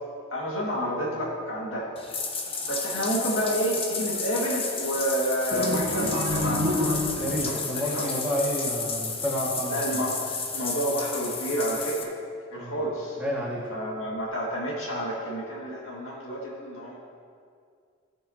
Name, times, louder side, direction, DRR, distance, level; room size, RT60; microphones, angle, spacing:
voice 1, 0.3-1.9 2.7-8.1 9.7-12.2 12.5-13.2 13.7-17.0, equal, 80° left, -4 dB, 2.1 m, -30 dB
Bathtub (filling or washing), 2.0-12.0, left 4 dB, 30° left, 0.7 m, -32 dB
sound 1, 5.5-7.5, left 1 dB, 85° right, 1.4 m, -28 dB
voice 2, 7.2-10.0 12.6-12.8 13.2-13.7, equal, 5° right, -6 dB, 1.9 m, -30 dB
15.5 x 6.7 x 2.9 m, 2.2 s
head